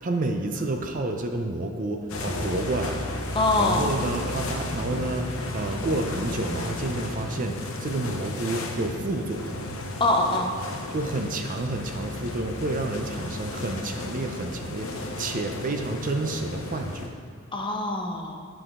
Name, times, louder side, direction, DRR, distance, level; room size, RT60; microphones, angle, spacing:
voice 1, 0.0-9.6 10.9-17.2, right 2 dB, 40° right, 4 dB, 0.5 m, -30 dB
sound 1, 2.1-17.1, left 2 dB, 80° left, 0.8 m, -34 dB
voice 2, 3.3-3.9 10.0-10.5 17.5-18.5, left 2 dB, 25° left, 2 dB, 0.7 m, -24 dB
10.0 x 4.8 x 3.6 m, 2.1 s
head